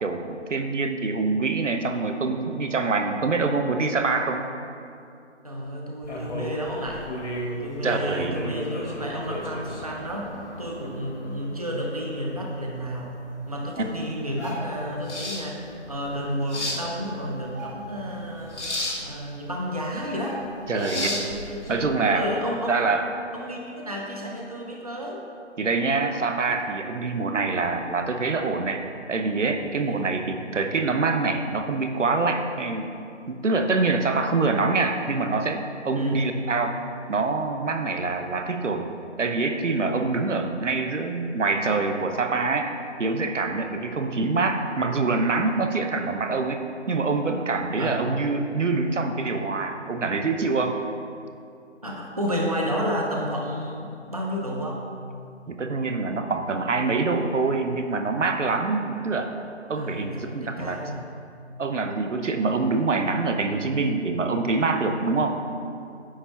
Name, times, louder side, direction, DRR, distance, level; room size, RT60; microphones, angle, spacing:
voice 1, 0.0-4.5 7.8-8.4 13.8-13.9 20.7-21.1 21.7-22.3 22.7-23.1 25.6-28.8 29.1-32.9 33.3-36.7 37.1-38.9 39.2-42.7 43.0-50.8 55.5-59.3 59.7-60.8 61.6-65.4, right 3 dB, 80° right, 6 dB, 0.8 m, -25 dB
voice 2, 5.4-7.1 7.6-13.2 13.5-18.6 19.0-20.4 20.7-21.8 22.1-25.2 29.9-30.1 36.0-36.3 47.8-48.0 51.8-54.8 59.7-61.0, equal, 30° right, -2 dB, 0.6 m, -31 dB
sound 1, 6.0-22.2, left 1 dB, 70° left, 1.8 m, -35 dB
sound 2, 14.2-14.9 16.4-16.5 16.8-17.0 17.4-18.2 18.6-18.7 19.5-19.6 20.2-20.8 21.2-21.3, right 1 dB, 15° right, 1.0 m, -39 dB
9.7 x 3.3 x 5.6 m, 2.5 s
figure-of-eight pair, 175°, 36 cm